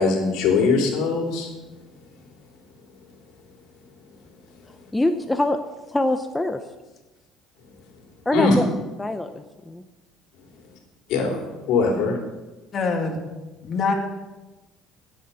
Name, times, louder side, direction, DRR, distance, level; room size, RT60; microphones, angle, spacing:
voice 1, 0.0-1.5 8.3-8.5 11.1-11.4 11.7-12.2, left 4 dB, 70° left, 0 dB, 3.2 m, -21 dB
voice 2, 4.9-5.6 5.9-6.6 8.3-8.7 9.0-9.8, left 1 dB, 10° left, 7 dB, 0.6 m, -24 dB
voice 3, 12.7-13.2 13.6-13.9, left 4 dB, 40° left, 2 dB, 2.3 m, -24 dB
16.0 x 7.6 x 5.7 m, 1.1 s
cardioid pair, 125°, 0 cm